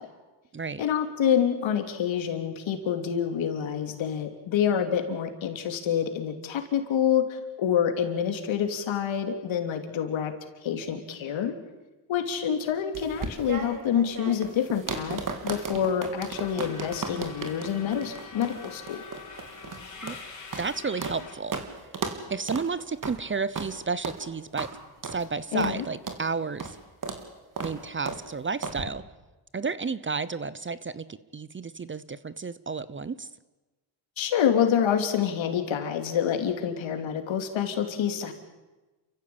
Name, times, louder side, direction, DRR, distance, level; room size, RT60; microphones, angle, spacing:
voice 1, 0.8-10.3 10.6-11.5 12.1-19.0 25.5-25.9 34.2-38.3, left 8 dB, 75° left, 6 dB, 3.2 m, -27 dB
sound 1, 12.9-21.2 21.5-21.7 21.9-22.2 22.5-22.7 23.0-23.2 23.5-23.7 24.0-24.2 24.6-24.7 25.0-25.2 25.6-25.8 26.1-26.2 26.6-26.8 27.0-27.2 27.6-27.8 28.1-28.2 28.6-28.8, right 4 dB, 40° right, 3.3 m, -35 dB
Subway metro underground, 16.3-21.3, left 5 dB, 35° left, 4.9 m, -44 dB
voice 2, 20.6-21.6 22.3-24.7 25.0-26.8 27.6-29.0 29.5-33.3, right 4 dB, 25° right, 17 dB, 0.8 m, -32 dB
28.5 x 15.0 x 8.7 m, 1.2 s
cardioid pair, 95°, 47 cm